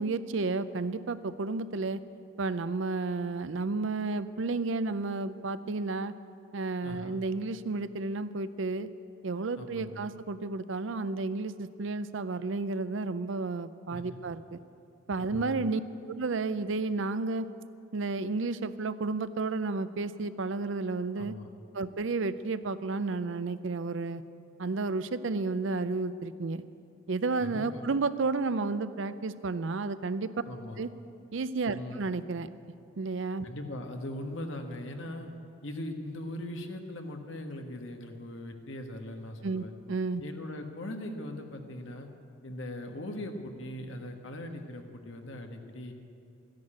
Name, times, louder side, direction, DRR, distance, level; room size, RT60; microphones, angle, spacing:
voice 1, 0.0-2.0 2.4-6.1 6.5-8.9 9.2-14.6 15.1-15.8 16.1-17.5 17.9-21.3 21.7-24.2 24.6-26.6 27.1-30.3 30.8-30.9 31.3-32.5 33.0-33.5 39.4-40.2, right 3 dB, 65° right, 13 dB, 0.5 m, -32 dB
voice 2, 6.8-7.2 9.6-10.1 13.9-14.1 15.2-15.7 21.1-21.5 27.4-27.8 30.5-30.8 31.7-32.0 33.4-35.3 35.6-39.7 40.2-42.1 42.4-45.9, left 1 dB, 65° left, 4 dB, 1.4 m, -40 dB
13.5 x 10.5 x 8.8 m, 2.6 s
head